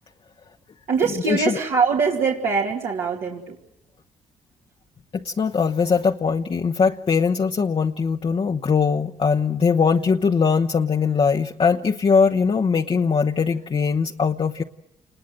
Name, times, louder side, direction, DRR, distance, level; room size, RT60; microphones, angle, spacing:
voice 1, 0.9-3.6, right 5 dB, 70° right, -3 dB, 2.7 m, -22 dB
voice 2, 5.1-14.6, left 5 dB, 40° left, 3 dB, 1.0 m, -21 dB
28.5 x 20.5 x 7.7 m, 0.86 s
supercardioid pair, 60°, 13 cm